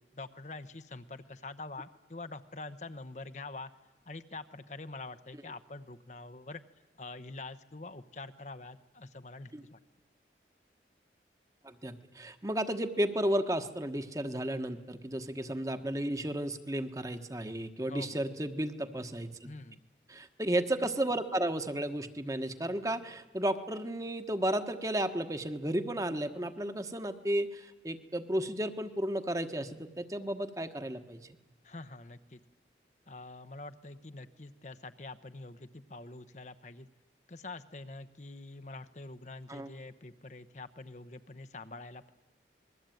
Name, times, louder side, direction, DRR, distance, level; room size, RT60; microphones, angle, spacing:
voice 1, 0.1-3.7 4.0-6.6 7.0-9.8 17.9-18.2 19.4-19.8 31.6-32.4 33.1-36.9 37.3-42.1, left 3 dB, 40° left, 9 dB, 1.0 m, -45 dB
voice 2, 11.6-19.5 20.1-31.2 39.5-39.7, right 1 dB, 20° right, 8 dB, 1.3 m, -33 dB
27.5 x 21.5 x 9.2 m, 1.1 s
head